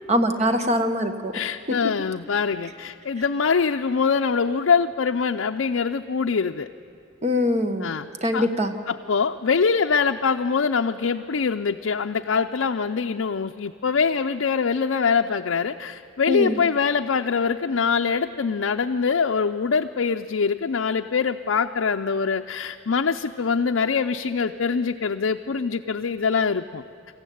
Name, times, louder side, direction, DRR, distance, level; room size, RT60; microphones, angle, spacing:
voice 1, 0.1-1.3 7.2-7.9 8.2-8.7 16.3-16.6, left 1 dB, 35° right, 7 dB, 1.4 m, -22 dB
voice 2, 1.3-6.7 7.8-8.1 8.3-8.5 8.9-26.8, left 5 dB, 70° left, 4 dB, 0.5 m, -23 dB
27.0 x 14.5 x 9.3 m, 2.5 s
head